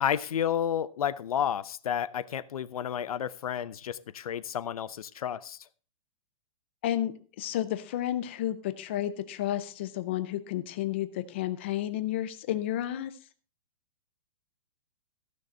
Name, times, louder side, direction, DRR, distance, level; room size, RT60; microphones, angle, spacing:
voice 1, 0.0-5.6, left 9 dB, 75° left, 0.7 m, -31 dB
voice 2, 6.8-13.1, left 12 dB, 20° left, 0.4 m, -31 dB
14.5 x 6.5 x 4.3 m
hypercardioid pair, 180°, 19 cm